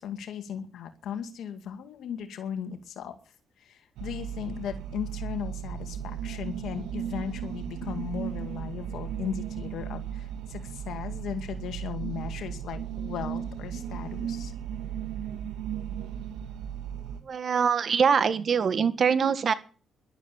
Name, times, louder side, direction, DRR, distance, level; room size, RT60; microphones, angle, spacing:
voice 1, 0.0-3.2 3.6-14.5, left 8 dB, 75° left, 8 dB, 2.2 m, -37 dB
sound 1, 4.0-17.2, right 9 dB, 85° right, 2.2 m, -36 dB
voice 2, 17.3-19.5, right 6 dB, 50° right, 12 dB, 1.7 m, -23 dB
12.0 x 11.5 x 8.5 m, 0.38 s
cardioid pair, 90°, 0 cm